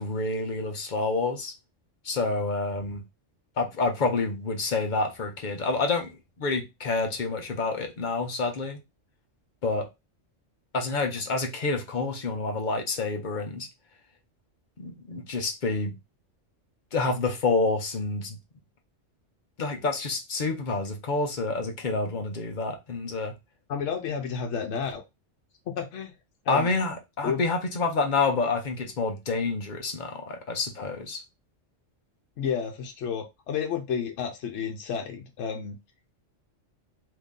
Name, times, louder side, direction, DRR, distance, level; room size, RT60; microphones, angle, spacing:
voice 1, 0.0-1.5 2.0-3.0 3.6-8.8 9.6-9.9 10.7-13.7 14.8-16.0 16.9-18.4 19.6-23.3 26.5-31.2, left 3 dB, 45° left, 0.8 m, -28 dB
voice 2, 23.7-25.0 25.7-26.1 26.5-26.7 27.2-27.4 32.4-35.8, left 7 dB, 70° left, 1.0 m, -31 dB
2.8 x 2.6 x 3.6 m
omnidirectional pair, 1.3 m